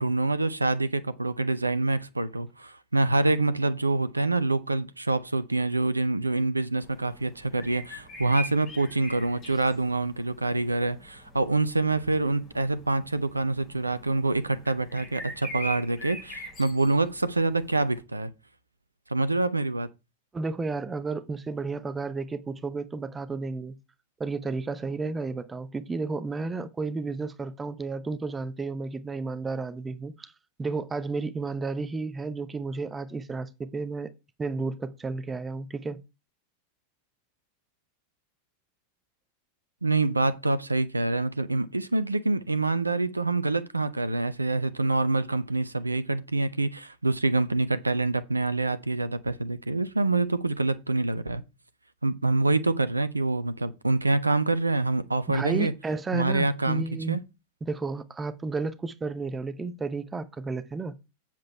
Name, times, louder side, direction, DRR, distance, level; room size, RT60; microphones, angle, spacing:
voice 1, 0.0-18.3 19.1-19.9 39.8-51.4 52.0-55.7 56.1-57.2, right 2 dB, 80° right, 0.7 m, -26 dB
sound 1, 6.8-18.0, equal, 30° left, 5.1 m, -44 dB
voice 2, 20.3-23.8 24.2-30.3 30.6-34.1 34.4-36.0 55.3-57.2 57.6-61.0, right 3 dB, 15° right, 0.8 m, -32 dB
7.7 x 7.5 x 4.4 m
figure-of-eight pair, 90°, 0 cm